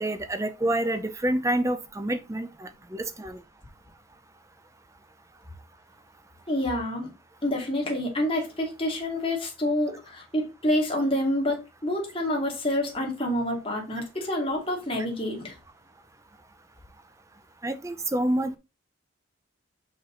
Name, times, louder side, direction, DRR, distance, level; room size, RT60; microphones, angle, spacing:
voice 1, 0.0-3.4 17.6-18.6, right 1 dB, 15° right, 0.5 m, -28 dB
voice 2, 6.5-7.1 7.4-15.6, left 1 dB, 25° left, 2.5 m, -28 dB
6.0 x 5.5 x 3.9 m
head